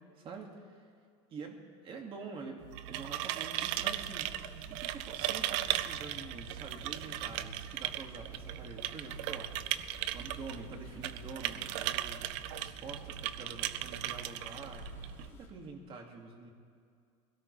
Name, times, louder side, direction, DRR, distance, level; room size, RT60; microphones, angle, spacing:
voice 1, 0.2-0.8 1.3-4.3 4.7-12.3 12.6-14.9 15.2-16.5, right 4 dB, 35° right, 2 dB, 2.2 m, -47 dB
sound 1, 2.6-15.3, right 13 dB, 80° right, 0.6 m, -37 dB
sound 2, 3.7-15.5, left 3 dB, 15° left, 2.7 m, -53 dB
22.5 x 17.5 x 3.3 m, 2.3 s
cardioid pair, 140°, 15 cm